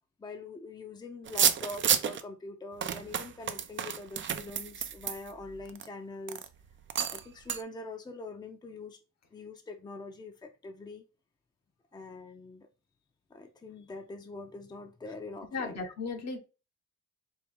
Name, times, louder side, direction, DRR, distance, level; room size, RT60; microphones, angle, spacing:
voice 1, 0.2-6.5 7.1-9.0 9.3-11.0 11.9-12.7 13.3-15.9, left 2 dB, 15° left, 0.6 m, -44 dB
sound 1, 1.3-2.2 2.8-5.9 6.3-6.5 6.9-7.2 7.5-7.6, right 8 dB, 40° right, 0.5 m, -30 dB
voice 2, 15.5-16.4, left 4 dB, 60° left, 1.0 m, -35 dB
4.6 x 2.3 x 3.4 m
cardioid pair, 90°, 30 cm